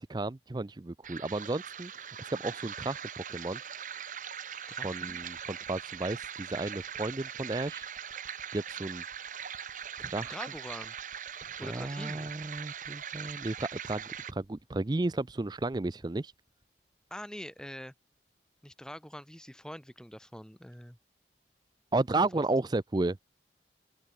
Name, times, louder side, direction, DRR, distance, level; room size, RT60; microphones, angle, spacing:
voice 1, 0.0-3.6 4.8-7.9 8.5-9.0 10.0-10.4 11.5-14.0 14.3-16.3 21.9-23.2, right 2 dB, 25° right, 0.5 m, -33 dB
sound 1, 1.0-14.3, right 8 dB, 45° right, 1.3 m, -41 dB
voice 2, 4.7-5.2 10.3-11.0 11.6-12.3 17.1-17.9 18.6-21.0, equal, 5° left, 3.6 m, -44 dB
sound 2, 5.1-17.8 18.4-18.5, equal, 20° left, 5.2 m, -64 dB
open air
head